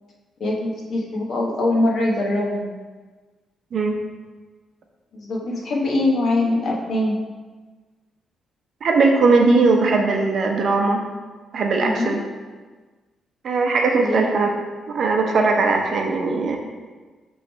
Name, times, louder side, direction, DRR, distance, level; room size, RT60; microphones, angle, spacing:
voice 1, 0.4-2.7 5.1-7.2 11.8-12.2 14.0-14.3, left 2 dB, 45° left, -1 dB, 1.0 m, -22 dB
voice 2, 8.8-11.0 11.5-12.2 13.4-14.5 14.9-16.6, right 3 dB, 45° right, 2 dB, 0.6 m, -19 dB
5.7 x 3.2 x 5.5 m, 1.3 s
cardioid pair, 165°, 0 cm